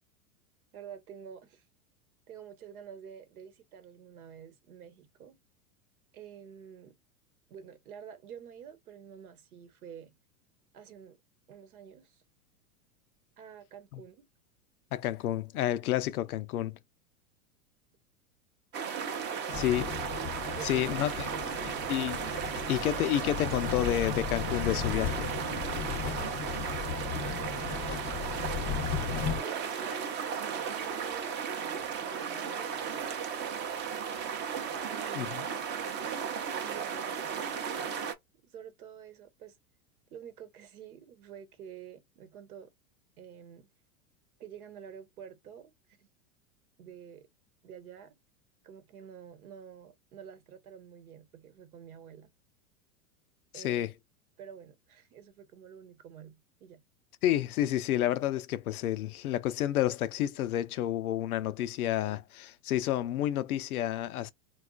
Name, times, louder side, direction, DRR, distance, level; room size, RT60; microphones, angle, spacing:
voice 1, 0.7-1.7 2.3-5.4 6.1-7.0 7.5-10.2 10.7-11.2 11.5-12.2 13.4-14.2 19.3-19.4 20.5-21.1 21.4-22.0 26.1-27.9 28.1-28.8 29.4-30.1 30.4-33.1 34.8-35.8 36.6-38.0 38.4-39.6 40.1-42.7 43.2-43.7 44.4-46.1 46.8-47.3 47.6-48.2 48.6-52.3 53.5-53.8 54.4-56.8, right 8 dB, 90° right, 1.0 m, -49 dB
voice 2, 14.9-16.8 19.5-19.9 20.6-21.3 21.9-22.2 22.7-25.3 35.2-35.5 53.5-53.9 57.2-64.3, left 12 dB, 90° left, 0.6 m, -30 dB
sound 1, 18.7-38.1, right 7 dB, 25° right, 0.5 m, -35 dB
sound 2, 19.5-29.4, left 8 dB, 30° left, 0.6 m, -36 dB
4.1 x 2.3 x 2.3 m
hypercardioid pair, 120°, 43 cm